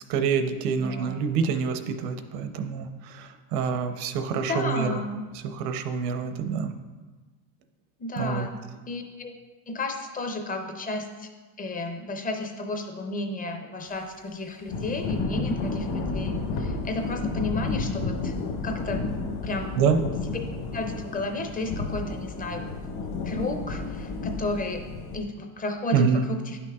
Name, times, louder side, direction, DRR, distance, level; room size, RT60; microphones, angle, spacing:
voice 1, 0.0-5.0 5.4-6.7 8.2-8.5 19.8-20.0 25.9-26.3, right 6 dB, 75° right, 8 dB, 0.8 m, -26 dB
voice 2, 0.8-1.2 4.4-5.3 8.0-8.6 8.9-9.3 9.7-11.3 11.6-18.3 18.6-19.1 19.4-19.8 20.3-20.4 20.7-22.7 23.2-24.8 25.1-26.6, left 2 dB, 20° left, 5 dB, 0.5 m, -32 dB
Thunder / Rain, 14.7-25.2, left 3 dB, 50° left, 1.1 m, -31 dB
9.9 x 5.8 x 2.3 m, 1.3 s
supercardioid pair, 125°, 47 cm